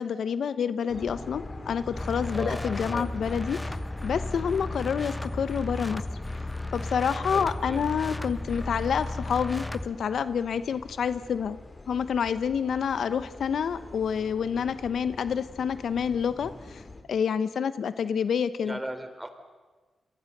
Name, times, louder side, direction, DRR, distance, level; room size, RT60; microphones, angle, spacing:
voice 1, 0.0-3.7 4.0-6.0 6.7-11.6 11.9-16.8 17.1-18.8, left 7 dB, 75° left, 14 dB, 0.9 m, -28 dB
sound 1, 0.9-17.0, left 2 dB, 30° left, 3.1 m, -44 dB
sound 2, 1.9-9.9, left 2 dB, 10° left, 1.0 m, -34 dB
voice 2, 2.3-3.1 7.3-7.8 18.6-19.3, right 1 dB, 10° right, 9 dB, 3.3 m, -37 dB
28.5 x 24.0 x 6.7 m, 1.3 s
cardioid pair, 90°, 0 cm